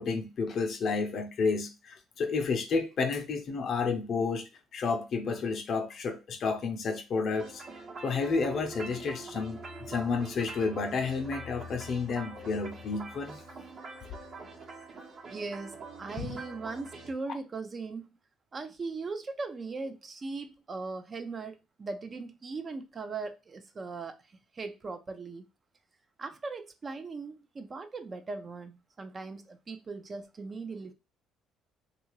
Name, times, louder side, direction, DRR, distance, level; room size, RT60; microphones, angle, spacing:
voice 1, 0.0-7.6 8.0-13.4 16.2-16.4, left 4 dB, 55° left, 0.6 m, -31 dB
sound 1, 7.3-17.1, right 2 dB, 55° right, 1.0 m, -44 dB
voice 2, 15.3-18.1 18.5-24.2 24.5-25.5 26.2-30.9, right 3 dB, 35° right, 0.5 m, -39 dB
2.8 x 2.4 x 3.0 m
supercardioid pair, 75°, 0 cm